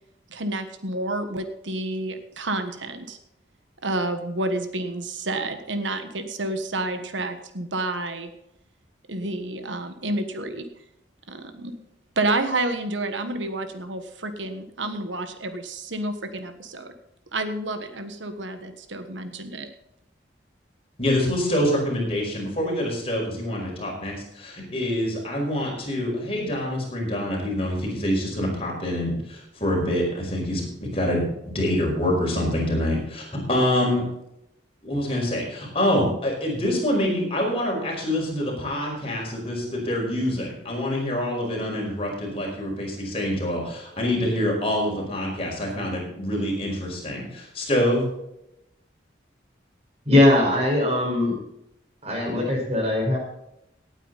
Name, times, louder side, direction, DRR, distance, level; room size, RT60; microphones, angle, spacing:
voice 1, 0.3-3.2 3.8-8.3 9.1-10.7 11.3-11.8 12.2-16.9 17.3-19.7, right 2 dB, 85° right, 8 dB, 1.4 m, -29 dB
voice 2, 21.0-34.0 34.8-48.1, left 1 dB, 30° left, -1 dB, 5.0 m, -26 dB
voice 3, 50.0-51.3 52.0-53.2, left 1 dB, 35° right, -1 dB, 4.9 m, -20 dB
18.0 x 9.1 x 4.1 m, 0.82 s
head